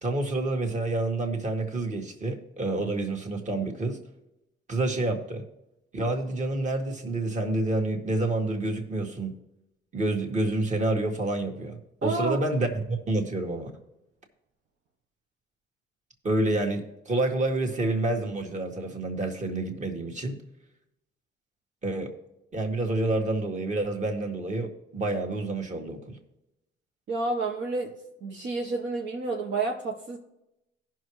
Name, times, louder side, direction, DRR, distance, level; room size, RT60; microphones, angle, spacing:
voice 1, 0.0-4.0 4.7-5.4 5.9-9.3 9.9-13.7 16.2-20.4 21.8-22.1 22.5-26.2, right 2 dB, 35° right, 2 dB, 1.9 m, -28 dB
voice 2, 12.0-12.4 27.1-27.9 28.2-30.2, right 3 dB, 65° right, 1 dB, 1.2 m, -29 dB
16.5 x 6.0 x 3.2 m, 0.89 s
cardioid pair, 90°, 20 cm